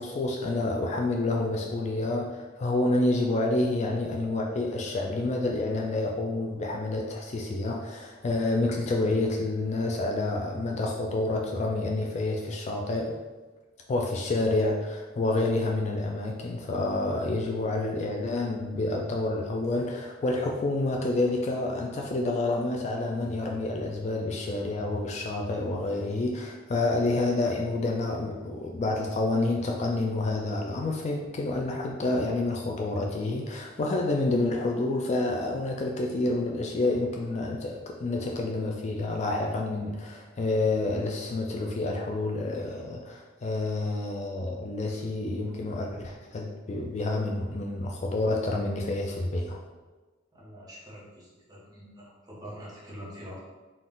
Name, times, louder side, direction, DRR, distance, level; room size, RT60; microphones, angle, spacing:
voice 1, 0.0-13.2 13.9-49.6, left 2 dB, 35° left, 0 dB, 0.3 m, -28 dB
voice 2, 50.3-53.4, equal, 20° right, -6 dB, 1.2 m, -44 dB
4.0 x 2.4 x 3.7 m, 1.2 s
head